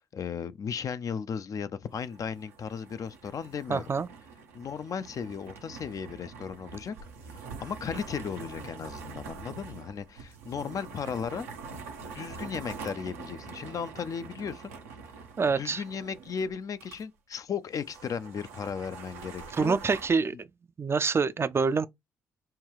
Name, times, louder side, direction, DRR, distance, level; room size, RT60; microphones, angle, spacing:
voice 1, 0.1-3.8 4.5-6.9 7.3-11.5 12.1-14.7 15.6-19.8, left 6 dB, 45° left, 0.4 m, -36 dB
sound 1, 1.8-17.0 17.3-17.4 17.7-20.1, right 4 dB, 85° right, 0.7 m, -45 dB
voice 2, 3.7-4.1 15.4-15.8 19.5-20.5 20.8-21.9, right 5 dB, 30° right, 0.4 m, -26 dB
5.5 x 2.2 x 3.2 m
hypercardioid pair, 45°, 8 cm